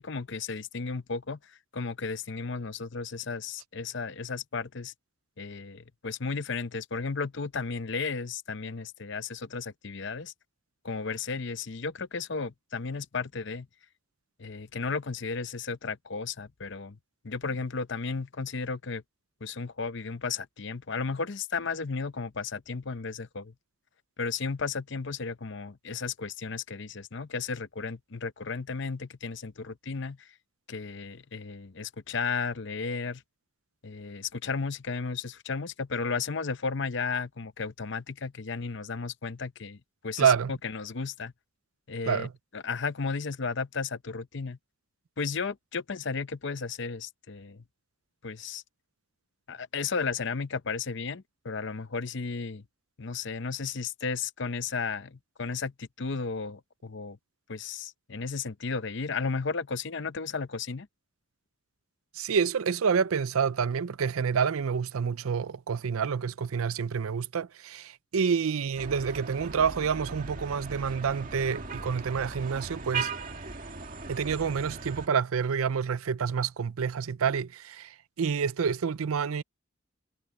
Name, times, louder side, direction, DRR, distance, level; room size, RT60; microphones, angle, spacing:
voice 1, 0.0-4.9 5.4-10.3 10.8-13.7 14.4-17.0 17.2-19.0 19.4-23.5 24.2-30.3 30.7-33.2 33.8-39.8 40.0-41.3 41.9-42.3 42.5-44.6 45.2-47.6 48.2-48.6 49.5-52.6 53.0-57.2 57.5-60.9, left 4 dB, 55° left, 0.7 m, -34 dB
voice 2, 40.2-40.5 42.1-42.3 62.1-73.1 74.1-79.4, right 6 dB, 80° right, 0.5 m, -28 dB
sound 1, 68.8-75.1, right 4 dB, 40° right, 2.0 m, -38 dB
head